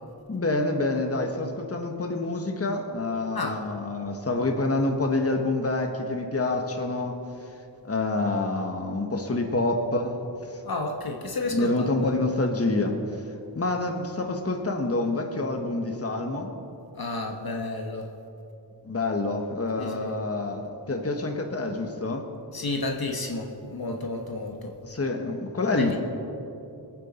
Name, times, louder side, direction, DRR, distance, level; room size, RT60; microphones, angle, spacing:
voice 1, 0.3-7.2 7.8-10.6 11.5-13.3 13.5-16.5 18.8-22.3 24.8-26.0, left 2 dB, 35° left, 3 dB, 1.3 m, -27 dB
voice 2, 10.6-12.1 16.9-18.1 19.8-20.1 22.5-24.8 25.8-26.0, left 2 dB, 55° left, 2 dB, 1.3 m, -31 dB
21.0 x 8.9 x 4.3 m, 2.8 s
wide cardioid pair, 60°, 44 cm